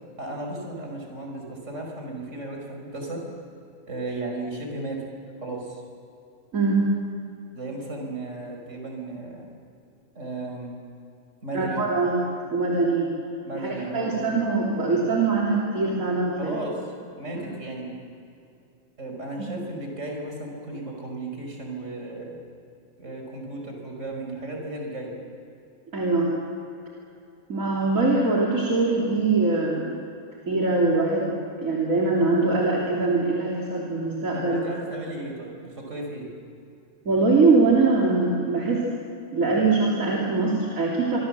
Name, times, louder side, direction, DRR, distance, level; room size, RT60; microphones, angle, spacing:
voice 1, 0.2-3.2 3.9-5.1 5.4-5.8 7.5-9.5 10.2-10.8 11.4-11.8 13.4-14.2 16.4-17.9 19.0-22.4 23.0-25.2 34.3-36.3, right 2 dB, 65° right, 1 dB, 5.6 m, -34 dB
voice 2, 6.5-6.9 11.5-12.2 12.5-13.1 13.5-16.6 17.3-17.5 19.4-19.5 25.9-26.3 27.5-29.9 30.5-34.6 37.1-38.9 39.3-41.2, right 3 dB, 90° right, -4 dB, 3.7 m, -22 dB
26.5 x 24.5 x 7.6 m, 2.6 s
omnidirectional pair, 1.4 m